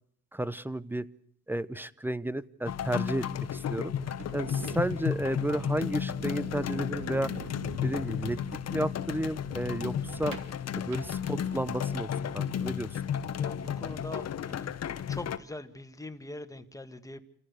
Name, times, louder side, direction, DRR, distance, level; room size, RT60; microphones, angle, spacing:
voice 1, 0.3-1.1 1.5-3.9 4.3-7.3 7.8-8.4 8.7-10.4 10.7-13.0, right 1 dB, 5° right, 17 dB, 0.8 m, -32 dB
sound 1, 2.7-15.4, left 8 dB, 55° left, 1.1 m, -33 dB
sound 2, 4.0-11.8, right 6 dB, 85° right, 2.6 m, -46 dB
voice 2, 13.4-14.7 15.1-17.2, left 2 dB, 10° left, 9 dB, 1.6 m, -42 dB
27.5 x 14.5 x 8.1 m, 0.68 s
cardioid pair, 90°, 30 cm